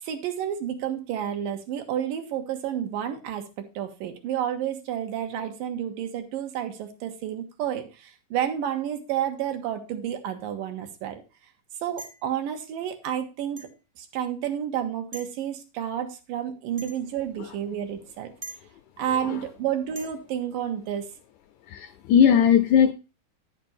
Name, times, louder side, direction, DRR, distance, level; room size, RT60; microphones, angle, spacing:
voice 1, 0.0-11.2 11.8-13.7 14.0-18.3 19.0-21.1, right 10 dB, 85° right, 6 dB, 2.8 m, -30 dB
sound 1, 12.0-12.3 13.6-13.8 15.1-15.4 16.8-17.0 18.4-18.6 19.9-20.1, right 2 dB, 35° right, 0.7 m, -41 dB
voice 2, 21.7-22.9, left 8 dB, 80° left, 7 dB, 1.7 m, -19 dB
10.5 x 6.0 x 4.2 m, 0.30 s
omnidirectional pair, 3.9 m